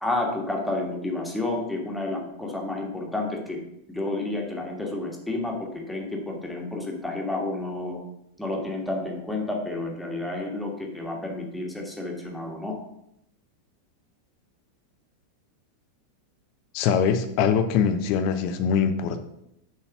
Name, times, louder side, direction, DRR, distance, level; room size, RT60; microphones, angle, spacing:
voice 1, 0.0-3.6 3.9-8.0 8.4-12.8, left 2 dB, 5° left, -1 dB, 1.6 m, -30 dB
voice 2, 16.7-19.2, left 7 dB, 45° left, 8 dB, 0.8 m, -23 dB
7.4 x 4.0 x 5.9 m, 0.80 s
figure-of-eight pair, 90°, 0 cm